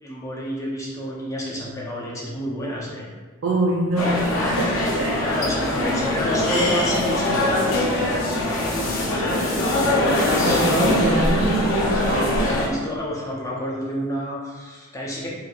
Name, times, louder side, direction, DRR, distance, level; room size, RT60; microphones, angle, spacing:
voice 1, 0.0-3.1 5.2-7.8 9.1-11.2 12.0-15.3, equal, 15° left, -4 dB, 0.5 m, -30 dB
voice 2, 3.4-4.7 5.0-5.3 10.4-12.5, right 2 dB, 55° right, -4 dB, 0.4 m, -24 dB
sound 1, 4.0-12.7, left 1 dB, 70° left, 0.6 m, -22 dB
4.0 x 2.6 x 2.3 m, 1.4 s
head